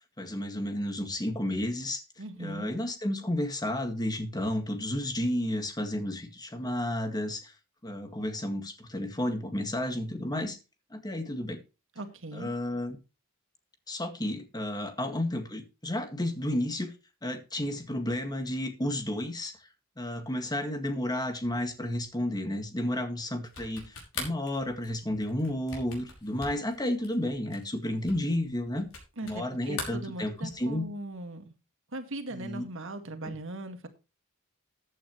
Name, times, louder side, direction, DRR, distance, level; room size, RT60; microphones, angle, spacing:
voice 1, 0.2-2.0 2.4-7.5 7.8-10.6 10.9-11.6 12.3-13.0 13.9-16.9 17.2-19.5 20.0-28.9 29.2-30.9 32.3-32.6 33.2-33.3, left 1 dB, 20° left, 1.9 m, -32 dB
voice 2, 2.2-2.7 12.0-12.5 29.2-31.5 31.9-33.9, right 2 dB, 65° right, 2.0 m, -39 dB
sound 1, 23.4-29.4 29.7-30.7, left 3 dB, 80° left, 5.5 m, -42 dB
14.5 x 8.9 x 3.1 m
head